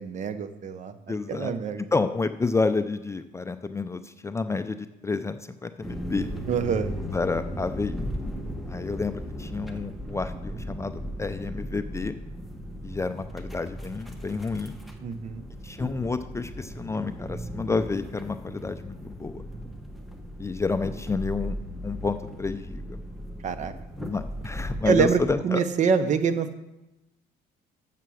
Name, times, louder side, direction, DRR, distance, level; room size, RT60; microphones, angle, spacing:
voice 1, 0.0-0.9 1.3-1.8 6.5-6.9 15.0-15.5 23.4-23.7 24.9-26.6, right 6 dB, 45° right, 10 dB, 0.8 m, -25 dB
voice 2, 1.1-1.5 1.8-6.3 7.0-8.0 8.7-12.2 12.8-14.7 15.6-19.4 20.4-21.6 21.8-23.0 24.0-25.6, left 4 dB, 15° left, 9 dB, 0.4 m, -30 dB
sound 1, 5.8-25.3, equal, ahead, 1.1 m, -37 dB
7.5 x 6.8 x 6.2 m, 0.96 s
cardioid pair, 110°, 17 cm